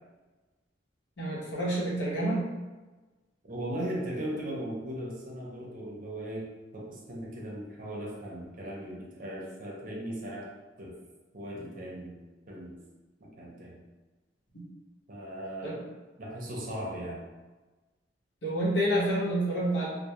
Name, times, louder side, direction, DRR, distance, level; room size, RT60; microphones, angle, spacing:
voice 1, 1.2-2.4 15.6-15.8 18.4-19.9, right 1 dB, 70° left, -6 dB, 0.8 m, -28 dB
voice 2, 3.4-10.5 10.8-11.0 11.3-12.8 13.2-13.8 15.1-15.9 16.2-17.2, right 1 dB, 50° right, -3 dB, 0.6 m, -38 dB
2.2 x 2.0 x 2.9 m, 1.2 s
head